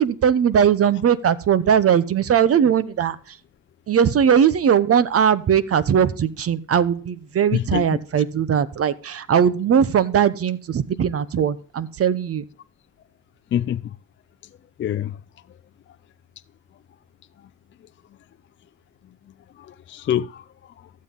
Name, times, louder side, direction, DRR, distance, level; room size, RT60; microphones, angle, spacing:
voice 1, 0.0-3.4 3.9-12.4, right 8 dB, 50° right, 0.8 m, -19 dB
voice 2, 7.5-8.0 13.5-14.0 14.8-15.2 19.6-20.9, left 10 dB, 40° left, 0.4 m, -26 dB
14.0 x 7.5 x 3.8 m
cardioid pair, 90°, 30 cm